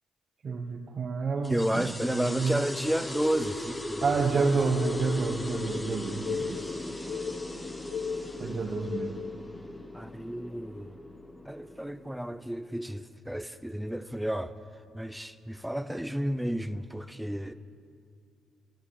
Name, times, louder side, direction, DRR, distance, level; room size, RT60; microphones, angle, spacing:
voice 1, 0.4-2.6 4.0-6.6 8.4-9.2, right 4 dB, 50° right, 1.0 m, -29 dB
sound 1, 1.4-12.5, left 1 dB, 15° left, 1.1 m, -38 dB
voice 2, 1.5-4.0 4.3-4.5 8.4-8.7 9.9-10.9 11.5-14.5 14.9-17.5, equal, 5° right, 0.5 m, -32 dB
sound 2, 4.6-9.4, left 6 dB, 65° left, 0.6 m, -37 dB
14.5 x 12.0 x 7.1 m
cardioid pair, 90°, 0 cm